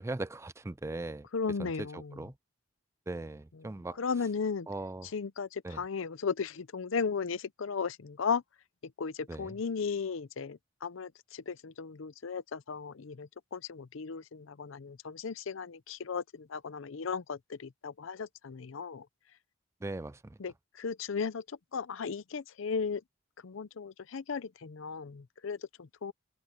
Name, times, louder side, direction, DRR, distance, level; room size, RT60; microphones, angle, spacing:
voice 1, 0.0-1.3 1.6-2.3 3.1-4.0 4.7-5.1 5.6-5.8 9.3-9.5 19.8-20.4, right 2 dB, 15° right, 0.4 m, -39 dB
voice 2, 1.3-2.2 4.0-4.7 5.1-8.4 9.0-19.1 20.4-21.4 21.7-23.0 23.4-26.1, left 5 dB, 70° left, 0.6 m, -36 dB
open air
head